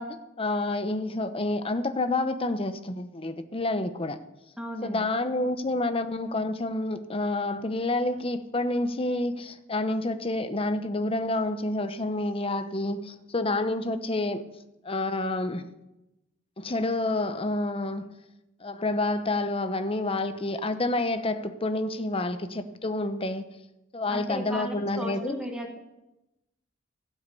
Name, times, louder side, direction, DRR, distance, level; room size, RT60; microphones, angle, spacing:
voice 1, 0.0-4.2 4.8-14.4 14.8-15.6 16.6-18.1 18.6-23.4 23.9-25.4, left 2 dB, 30° left, 0.8 m, -28 dB
voice 2, 4.6-5.1 24.1-25.8, equal, 5° right, 1.5 m, -36 dB
16.5 x 5.7 x 8.3 m
head